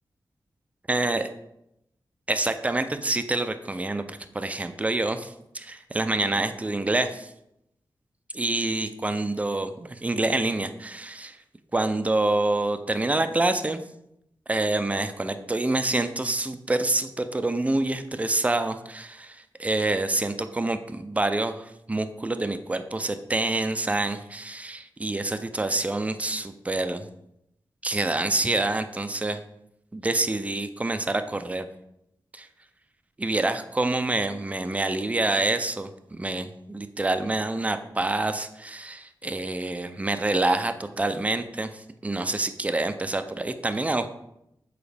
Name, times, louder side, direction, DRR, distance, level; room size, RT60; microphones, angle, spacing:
voice 1, 0.9-1.3 2.3-7.3 8.3-11.4 11.7-13.8 14.5-27.1 27.8-29.4 29.9-31.7 32.3-32.5 33.2-44.1, right 2 dB, 15° right, 9 dB, 0.4 m, -27 dB
7.0 x 4.2 x 3.4 m, 0.81 s
wide cardioid pair, 105°, 8 cm